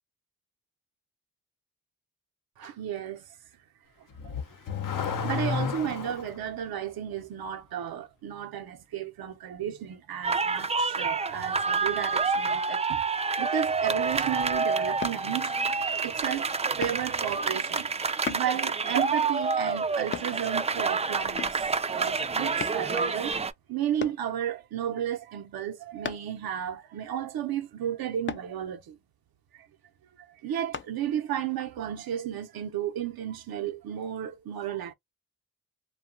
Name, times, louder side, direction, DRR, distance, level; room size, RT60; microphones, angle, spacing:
voice 1, 2.6-3.3 4.2-4.3 4.9-13.0 13.4-23.4 23.7-29.0 29.5-29.7 30.2-34.9, right 10 dB, 85° right, 0.7 m, -33 dB
Car / Accelerating revving vroom, 4.1-6.4, left 6 dB, 65° left, 0.8 m, -31 dB
sound 1, 10.2-23.5, right 4 dB, 20° right, 0.4 m, -28 dB
sound 2, 15.0-15.2 16.8-17.1 18.3-18.5 20.1-20.4 21.4-21.7 22.6-22.8 24.0-24.3 26.0-26.4 28.3-28.5 30.7-30.9 31.5-31.6, left 6 dB, 35° left, 0.5 m, -35 dB
2.7 x 2.3 x 2.5 m
cardioid pair, 70°, 35 cm